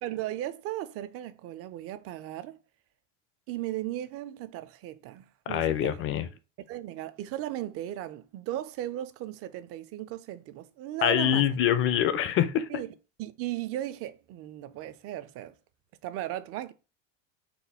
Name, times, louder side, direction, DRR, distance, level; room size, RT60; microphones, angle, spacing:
voice 1, 0.0-2.6 3.5-6.0 6.7-11.5 12.7-12.9 13.2-15.5 16.0-16.7, right 13 dB, 40° right, 0.4 m, -36 dB
voice 2, 5.5-6.3 11.0-12.7, left 10 dB, 35° left, 0.5 m, -25 dB
4.2 x 2.1 x 4.1 m
supercardioid pair, 120°, 36 cm